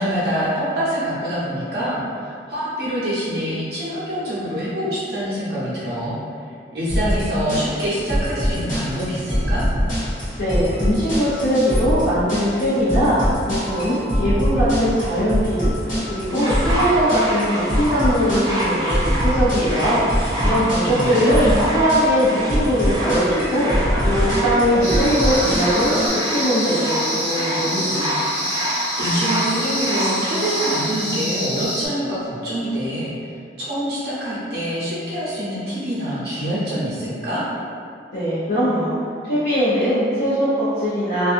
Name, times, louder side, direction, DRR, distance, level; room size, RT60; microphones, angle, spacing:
voice 1, 0.0-6.2 6.7-9.6 20.4-21.3 29.0-33.1 33.6-37.4, equal, 60° right, -9 dB, 0.7 m, -25 dB
sound 1, 6.9-26.1, equal, 45° left, 1.0 m, -23 dB
voice 2, 10.4-20.0 20.4-28.2 38.1-39.0 39.2-41.3, equal, 60° left, -14 dB, 0.7 m, -21 dB
sound 2, 16.3-30.9 31.7-31.8, equal, 20° right, 0.4 m, -27 dB
sound 3, 24.8-31.9, equal, 5° left, 1.4 m, -27 dB
2.4 x 2.4 x 2.5 m, 2.3 s
head